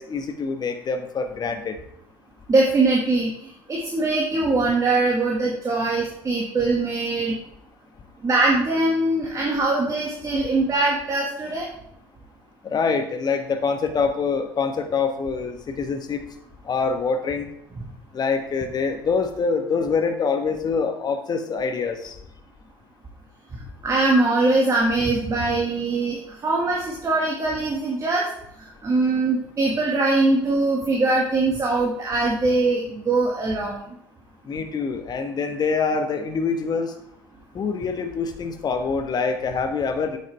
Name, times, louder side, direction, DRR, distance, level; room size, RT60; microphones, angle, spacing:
voice 1, 0.0-1.8 12.6-16.2 16.6-17.5 18.1-22.2 34.4-36.9 37.5-40.2, left 5 dB, 35° left, 7 dB, 1.3 m, -25 dB
voice 2, 2.5-3.3 3.7-7.3 8.2-11.7 23.8-28.2 28.8-33.9, right 2 dB, 30° right, -2 dB, 1.9 m, -22 dB
9.1 x 8.0 x 3.5 m, 0.73 s
figure-of-eight pair, 60°, 12 cm